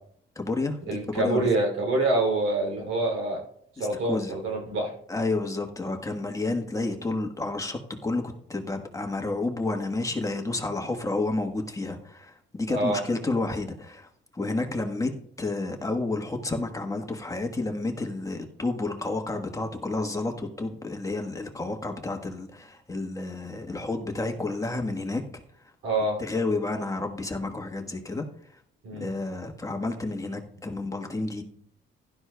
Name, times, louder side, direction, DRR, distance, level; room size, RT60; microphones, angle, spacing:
voice 1, 0.3-1.5 3.8-4.3 5.1-8.2 8.5-15.1 15.4-25.2 26.2-28.2 29.0-31.4, left 2 dB, 15° left, 3 dB, 1.3 m, -30 dB
voice 2, 0.9-3.4 3.8-4.9 12.7-13.0 25.8-26.2 28.8-29.1, right 2 dB, 90° right, 1 dB, 3.0 m, -26 dB
15.5 x 11.5 x 2.3 m, 0.67 s
cardioid pair, 90°, 20 cm